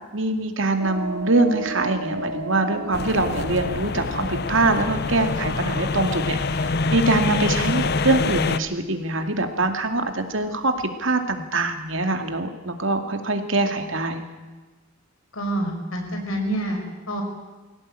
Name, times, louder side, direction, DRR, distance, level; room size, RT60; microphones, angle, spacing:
voice 1, 0.1-10.7 11.0-14.2, right 2 dB, 70° right, 6 dB, 2.5 m, -23 dB
sound 1, 0.8-10.9, right 3 dB, 90° right, 2.9 m, -36 dB
sound 2, 2.9-8.6, left 4 dB, 50° left, 0.7 m, -25 dB
voice 2, 15.3-17.2, right 1 dB, 90° left, 3 dB, 5.8 m, -27 dB
22.0 x 17.0 x 9.0 m, 1.3 s
head